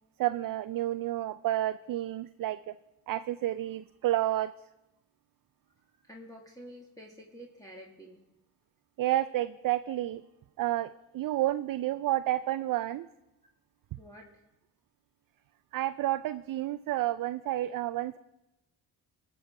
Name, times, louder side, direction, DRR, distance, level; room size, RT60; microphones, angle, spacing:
voice 1, 0.2-2.7 3.1-4.5 9.0-10.2 10.6-13.1 15.7-18.2, right 14 dB, 50° right, 13 dB, 0.5 m, -30 dB
voice 2, 5.9-8.2 14.0-14.3, equal, 10° left, -2 dB, 1.9 m, -49 dB
17.5 x 6.3 x 4.9 m, 0.96 s
supercardioid pair, 55°, 44 cm